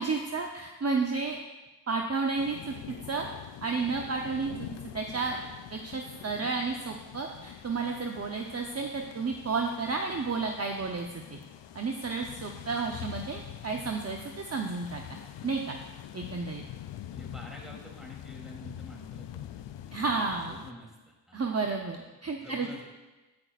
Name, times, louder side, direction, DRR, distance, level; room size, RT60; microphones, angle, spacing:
voice 1, 0.0-1.4 1.9-3.3 3.6-4.5 4.9-5.4 5.7-11.4 11.7-15.0 15.4-15.8 16.1-16.6 19.9-20.6 21.3-22.7, right 4 dB, 35° right, 2 dB, 0.8 m, -32 dB
sound 1, 2.4-20.7, left 11 dB, 85° left, 0.5 m, -45 dB
voice 2, 17.1-20.1 20.6-21.4 22.4-22.8, equal, ahead, -3 dB, 3.1 m, -48 dB
10.5 x 9.6 x 2.5 m, 1.1 s
cardioid pair, 55°, 43 cm